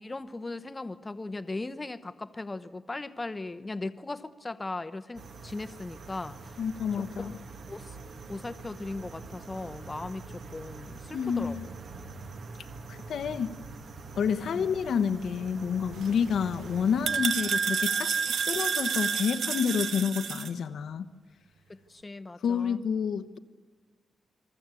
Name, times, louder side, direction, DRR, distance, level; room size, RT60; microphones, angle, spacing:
voice 1, 0.0-6.5 7.0-7.3 7.7-8.0 8.3-11.6 14.5-14.7 21.7-22.8, left 2 dB, 20° left, 12 dB, 0.9 m, -38 dB
sound 1, 5.2-17.2, right 3 dB, 60° right, 2.0 m, -45 dB
voice 2, 6.6-7.3 11.1-11.7 12.9-13.5 14.2-18.1 18.5-21.1 22.4-23.4, left 7 dB, 75° left, 9 dB, 1.1 m, -29 dB
sound 2, 15.9-20.5, right 6 dB, 80° right, 1.1 m, -30 dB
28.5 x 22.0 x 8.4 m, 1.4 s
wide cardioid pair, 170°, 0 cm